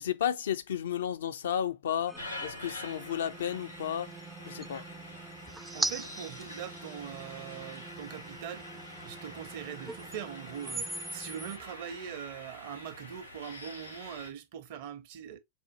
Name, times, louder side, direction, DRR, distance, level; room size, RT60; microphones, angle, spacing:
voice 1, 0.0-4.1 4.5-4.9, left 9 dB, 60° left, 0.4 m, -33 dB
sound 1, 2.1-14.3, left 1 dB, 90° left, 1.4 m, -46 dB
sound 2, 2.1-11.6, right 3 dB, 10° right, 0.3 m, -41 dB
voice 2, 5.7-8.7 9.0-15.4, right 9 dB, 50° right, 0.6 m, -42 dB
4.3 x 2.0 x 2.7 m
figure-of-eight pair, 90°, 0 cm